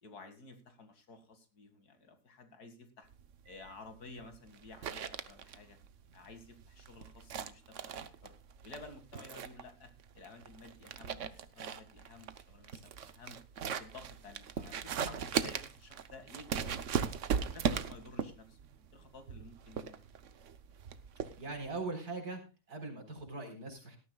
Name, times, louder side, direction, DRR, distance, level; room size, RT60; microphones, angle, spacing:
voice 1, 0.0-3.1 3.5-5.8 6.1-8.3 8.6-9.9 10.1-13.4 13.8-17.0 17.5-18.6 18.9-20.0, left 3 dB, 80° left, 7 dB, 2.7 m, -53 dB
sound 1, 3.1-21.7, right 7 dB, 55° right, 1.1 m, -39 dB
voice 2, 21.4-22.4 22.7-24.0, right 3 dB, 85° right, 2 dB, 4.6 m, -40 dB
18.0 x 13.0 x 2.3 m, 0.29 s
omnidirectional pair, 1.6 m